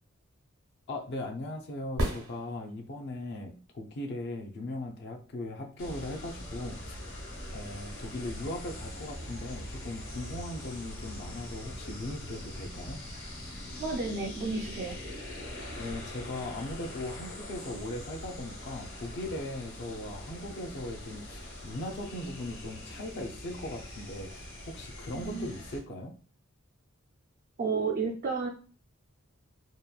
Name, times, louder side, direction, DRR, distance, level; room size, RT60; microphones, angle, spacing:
voice 1, 0.9-7.0 7.5-13.0 15.7-26.1, left 1 dB, 55° left, 4 dB, 0.4 m, -39 dB
sound 1, 1.9-3.1 7.0-7.1, equal, 90° right, 1.0 m, -33 dB
sound 2, 5.8-25.8, left 1 dB, 75° left, 1.1 m, -42 dB
voice 2, 13.8-15.0 25.1-25.5 27.6-28.5, right 4 dB, 40° right, 0 dB, 0.3 m, -32 dB
2.8 x 2.2 x 2.3 m, 0.39 s
head